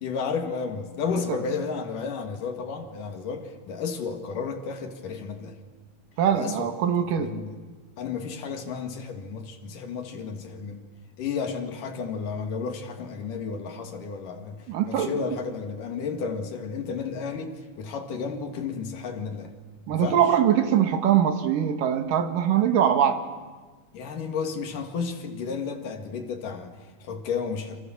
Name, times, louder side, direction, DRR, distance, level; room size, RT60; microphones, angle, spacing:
voice 1, 0.0-5.6 6.3-6.7 7.2-7.6 8.0-10.9 11.2-19.5 19.9-20.2 23.9-27.8, left 5 dB, 65° left, 3.7 m, -32 dB
voice 2, 6.2-7.3 14.7-15.2 19.9-23.2, right 9 dB, 70° right, 3.1 m, -22 dB
29.5 x 26.0 x 7.3 m
omnidirectional pair, 4.2 m